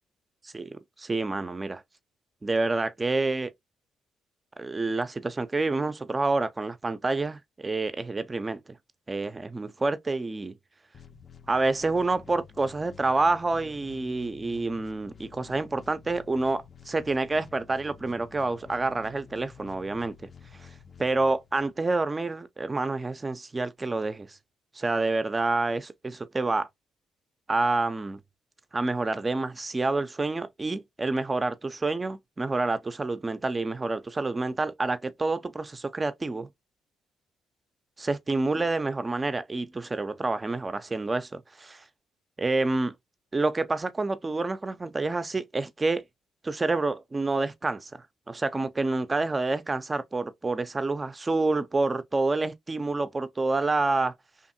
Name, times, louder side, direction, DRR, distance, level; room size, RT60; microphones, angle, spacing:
voice 1, 0.4-1.8 2.4-3.5 4.6-8.6 9.1-10.6 11.5-20.2 20.6-20.7 21.0-24.4 24.7-26.7 27.5-28.2 28.7-36.5 38.0-41.8 42.4-42.9 43.3-46.0 46.4-47.9 48.3-54.1, right 3 dB, 25° right, 0.4 m, -28 dB
sound 1, 10.9-21.9, left 6 dB, 45° left, 0.4 m, -50 dB
2.6 x 2.5 x 2.5 m
supercardioid pair, 60°, 0 cm